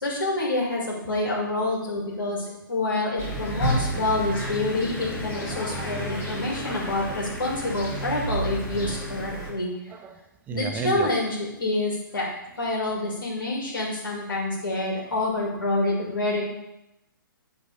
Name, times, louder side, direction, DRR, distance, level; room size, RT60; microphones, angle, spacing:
voice 1, 0.0-9.7 10.5-12.3 12.6-16.4, left 2 dB, 75° left, -5 dB, 2.4 m, -27 dB
sound 1, 3.2-9.5, right 1 dB, 15° left, 2.1 m, -31 dB
voice 2, 5.6-6.7 9.9-11.1 15.1-15.2, right 6 dB, 15° right, 7 dB, 0.6 m, -36 dB
9.6 x 3.8 x 5.3 m, 0.90 s
figure-of-eight pair, 125°, 11 cm